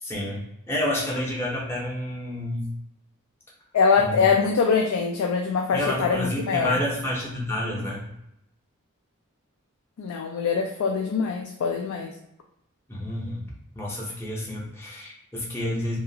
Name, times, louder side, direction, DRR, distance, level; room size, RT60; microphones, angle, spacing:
voice 1, 0.0-2.7 4.0-4.3 5.7-8.1 12.9-16.0, left 1 dB, 10° left, -4 dB, 0.6 m, -29 dB
voice 2, 3.7-6.8 10.0-12.2, left 5 dB, 85° left, 2 dB, 0.3 m, -23 dB
2.7 x 2.3 x 2.6 m, 0.81 s
head